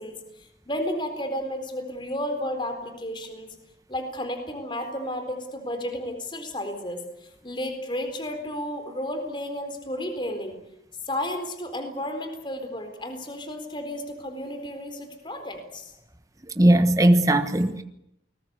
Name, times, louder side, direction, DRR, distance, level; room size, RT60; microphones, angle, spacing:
voice 1, 0.0-3.5 3.9-7.1 7.4-10.6 11.1-15.9, left 1 dB, 30° left, 4.1 m, -32 dB
voice 2, 16.6-17.8, right 1 dB, 20° right, 1.2 m, -18 dB
28.5 x 20.5 x 8.2 m
head